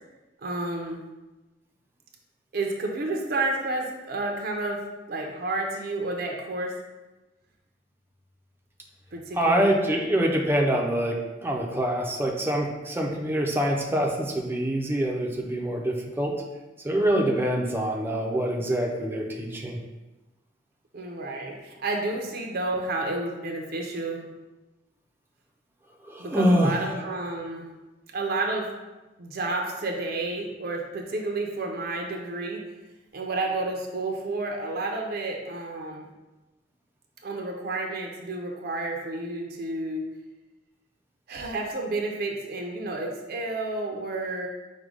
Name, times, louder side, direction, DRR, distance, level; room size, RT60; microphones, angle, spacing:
voice 1, 0.4-1.0 2.5-4.8 5.1-6.7 9.1-9.8 20.9-24.3 26.2-27.7 28.1-28.7 29.2-32.6 33.1-36.1 37.2-40.1 41.3-44.5, right 2 dB, 60° right, 1 dB, 0.6 m, -30 dB
voice 2, 9.4-16.3 16.8-19.8 26.0-26.8, right 1 dB, 15° right, 0 dB, 0.5 m, -25 dB
5.1 x 2.2 x 4.7 m, 1.1 s
head